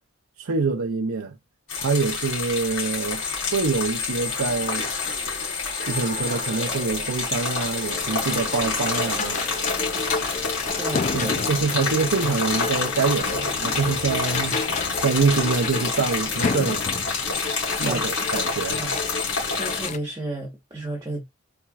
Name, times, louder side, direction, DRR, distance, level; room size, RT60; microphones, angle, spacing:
voice 1, 0.4-1.4 1.8-4.9 5.9-9.5 11.1-16.8 17.8-18.8, right 4 dB, 85° right, 0.6 m, -25 dB
sound 1, 1.7-19.9, left 4 dB, 75° left, 3.1 m, -28 dB
Skateboard, 1.8-18.8, right 3 dB, 35° right, 1.0 m, -42 dB
sound 2, 7.9-20.0, left 4 dB, 35° left, 0.4 m, -31 dB
voice 2, 10.8-11.4 17.8-18.0 18.7-19.0 19.5-21.2, right 2 dB, 15° right, 1.2 m, -32 dB
4.4 x 4.3 x 2.4 m
head